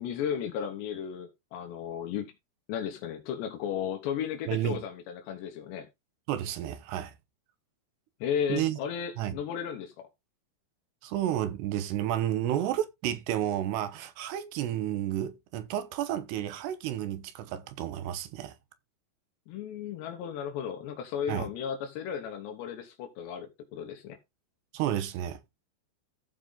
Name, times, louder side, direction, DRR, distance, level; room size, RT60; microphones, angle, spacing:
voice 1, 0.0-2.3 2.7-5.9 8.2-10.1 19.5-24.2, left 8 dB, 75° left, 3.4 m, -34 dB
voice 2, 4.5-4.8 6.3-7.1 8.5-8.8 9.2-9.4 11.0-18.6 21.3-21.5 24.7-25.4, right 12 dB, 75° right, 3.1 m, -31 dB
14.5 x 5.0 x 3.9 m
omnidirectional pair, 5.1 m